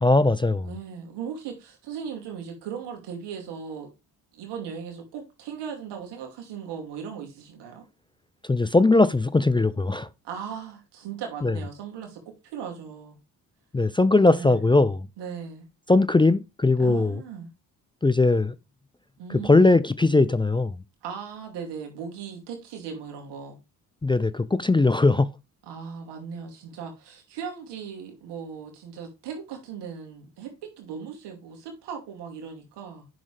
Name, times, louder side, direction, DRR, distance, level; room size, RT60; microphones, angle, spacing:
voice 1, 0.0-0.7 8.5-10.1 11.4-11.5 13.7-15.1 15.9-17.1 18.0-18.5 19.4-20.7 24.0-25.3, left 3 dB, 15° left, 0.4 m, -20 dB
voice 2, 0.6-3.9 4.3-7.8 10.2-13.2 14.2-14.7 15.2-15.6 16.8-17.5 19.2-19.7 21.0-23.6 25.6-33.1, right 7 dB, 85° right, 2.6 m, -38 dB
8.8 x 6.3 x 3.3 m
supercardioid pair, 55°, 40 cm